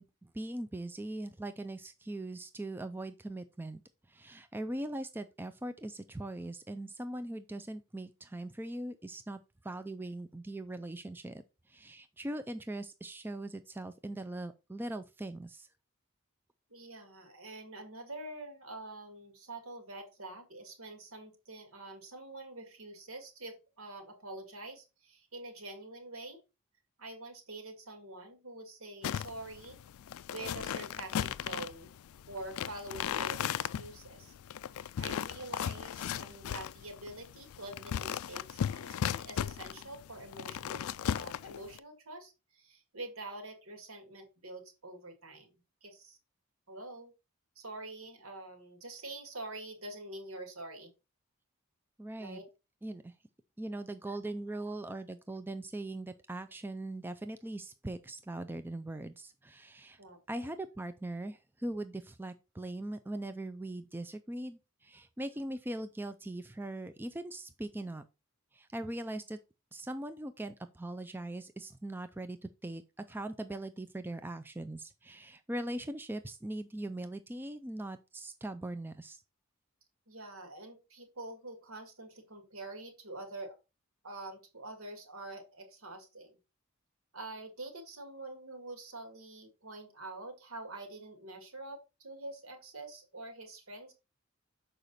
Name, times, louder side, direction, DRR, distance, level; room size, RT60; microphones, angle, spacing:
voice 1, 0.0-3.8 4.1-15.7 52.0-52.4 52.8-53.1 53.6-60.0 60.3-68.0 68.5-69.4 69.7-72.4 72.6-79.2, right 1 dB, 10° right, 0.3 m, -40 dB
voice 2, 16.7-26.4 27.0-29.8 30.3-31.9 32.3-34.3 34.7-45.5 45.8-46.2 46.7-47.1 47.6-50.9 52.2-52.4 60.0-60.5 80.1-83.6 84.0-86.4 87.1-93.9, right 2 dB, 75° right, 2.2 m, -46 dB
sound 1, 29.0-41.8, left 9 dB, 75° left, 0.3 m, -37 dB
6.5 x 5.0 x 4.0 m
head